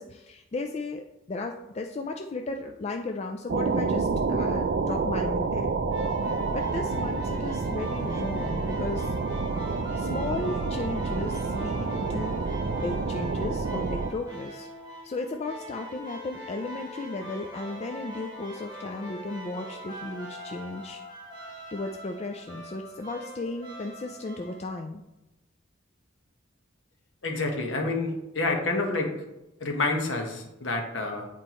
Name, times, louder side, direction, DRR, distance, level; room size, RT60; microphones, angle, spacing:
voice 1, 0.0-5.7 6.5-9.1 10.0-12.4 12.8-14.7 15.0-21.0 21.7-25.0, left 2 dB, 30° left, 3 dB, 0.3 m, -35 dB
sound 1, 3.5-14.1, right 4 dB, 55° right, 0.4 m, -28 dB
sound 2, 5.9-24.7, left 1 dB, 20° right, 1.4 m, -42 dB
voice 2, 27.2-29.1 29.6-31.3, left 2 dB, 65° left, 2 dB, 1.2 m, -28 dB
8.7 x 4.4 x 3.0 m, 0.95 s
head